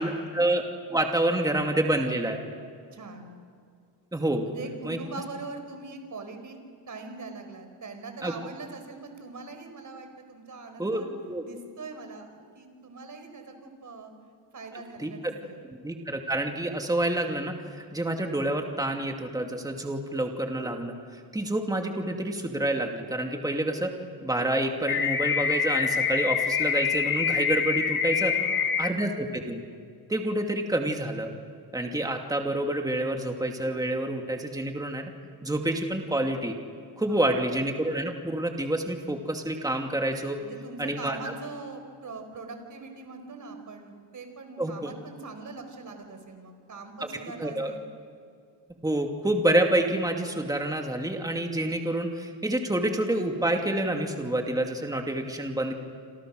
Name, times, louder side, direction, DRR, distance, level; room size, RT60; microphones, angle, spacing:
voice 1, 0.0-2.4 4.1-4.5 4.8-5.0 8.2-8.3 10.8-11.0 11.3-11.4 15.0-15.3 15.7-23.9 24.2-28.4 28.8-29.6 30.1-31.3 31.7-35.1 35.4-36.6 37.0-40.4 40.8-41.2 44.6-44.9 47.0-47.1 47.4-47.7 48.8-55.7, right 1 dB, 10° right, 3 dB, 2.5 m, -28 dB
voice 2, 2.9-3.4 4.5-6.6 6.9-11.1 11.4-14.1 14.5-15.6 28.3-29.0 37.1-37.4 40.4-47.8, right 3 dB, 40° right, 6 dB, 4.9 m, -42 dB
sound 1, 24.9-28.9, left 7 dB, 45° left, 2.2 m, -26 dB
28.0 x 27.5 x 6.5 m, 2.2 s
cardioid pair, 120°, 46 cm